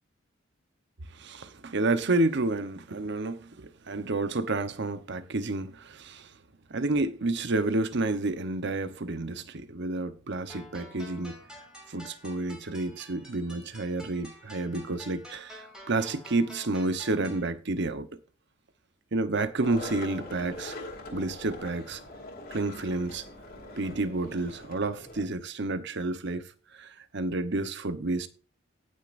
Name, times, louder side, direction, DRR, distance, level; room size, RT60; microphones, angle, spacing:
voice 1, 1.1-6.3 6.7-11.4 11.9-18.1 19.1-20.8 21.1-22.0 22.5-23.2 23.8-28.3, right 2 dB, 60° right, 1.0 m, -30 dB
sound 1, 10.5-17.5, equal, 5° right, 4.8 m, -49 dB
Skateboard, 19.6-25.2, left 2 dB, 50° left, 2.5 m, -43 dB
19.0 x 6.6 x 2.6 m
head